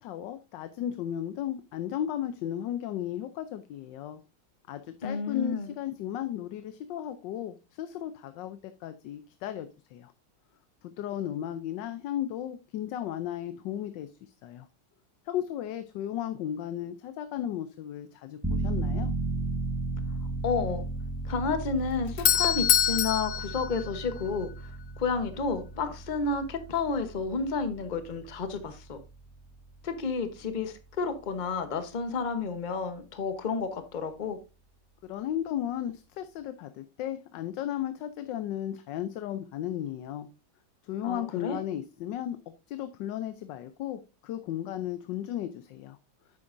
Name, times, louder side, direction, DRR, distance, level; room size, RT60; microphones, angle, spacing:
voice 1, 0.0-4.2 4.7-10.1 10.8-14.7 15.3-19.1 35.0-40.3 40.8-42.4 42.7-46.0, left 11 dB, 90° left, 1.3 m, -35 dB
voice 2, 5.0-5.7 20.4-20.8 21.2-29.0 29.8-34.4 41.0-41.6, left 4 dB, 35° left, 0.9 m, -31 dB
sound 1, 18.4-30.9 31.3-31.4, right 3 dB, 10° right, 0.9 m, -35 dB
Doorbell, 21.8-24.7, left 11 dB, 65° left, 0.9 m, -26 dB
9.7 x 7.6 x 2.5 m
omnidirectional pair, 1.9 m